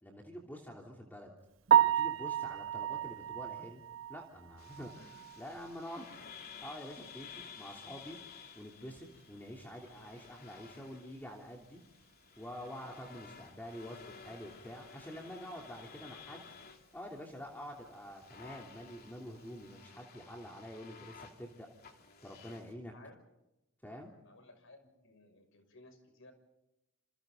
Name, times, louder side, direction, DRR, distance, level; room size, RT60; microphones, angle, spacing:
voice 1, 0.0-1.3 1.8-3.8 4.1-6.1 6.6-8.2 8.5-11.8 12.4-16.4 16.9-21.7 22.2-22.9 23.8-24.1, equal, 10° left, 0 dB, 3.2 m, -47 dB
Piano, 1.7-5.7 6.0-6.1 6.6-6.7 7.1-7.2 10.3-10.4 18.9-19.1, right 10 dB, 65° right, 1.0 m, -31 dB
sound 1, 4.6-22.7, left 6 dB, 50° left, 3.1 m, -54 dB
voice 2, 24.2-26.3, left 2 dB, 65° left, 7 dB, 6.3 m, -58 dB
28.5 x 28.5 x 3.9 m, 0.93 s
head